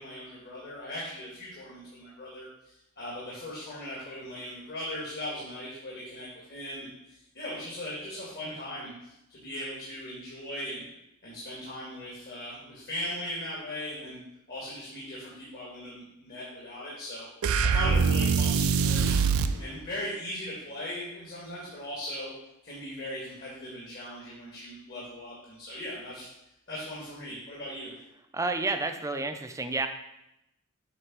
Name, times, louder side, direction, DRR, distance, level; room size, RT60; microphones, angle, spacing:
voice 1, 0.0-10.9 11.2-14.2 14.5-17.3 17.6-19.2 19.6-22.3 22.6-26.3 26.7-27.9, left 1 dB, 50° left, -6 dB, 1.9 m, -39 dB
sound 1, 17.4-19.6, right 5 dB, 70° right, 0.5 m, -24 dB
voice 2, 28.3-29.9, right 3 dB, 15° right, 7 dB, 0.5 m, -31 dB
7.9 x 3.4 x 6.1 m, 0.85 s
head